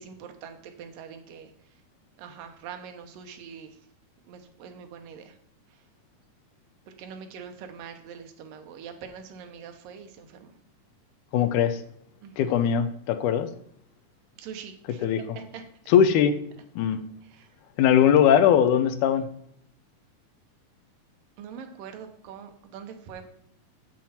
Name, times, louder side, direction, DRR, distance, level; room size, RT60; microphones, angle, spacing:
voice 1, 0.0-1.5 2.2-3.8 4.3-5.4 5.7-5.8 7.0-10.5 12.2-12.6 14.4-15.6 17.3-17.5 21.4-23.3, right 7 dB, 80° right, 6 dB, 2.6 m, -43 dB
voice 2, 11.3-11.8 12.4-13.5 15.0-15.4 15.9-16.4 16.8-17.1 17.8-19.3, left 9 dB, 75° left, 9 dB, 2.0 m, -20 dB
7.7 x 7.5 x 4.3 m, 0.68 s
omnidirectional pair, 3.9 m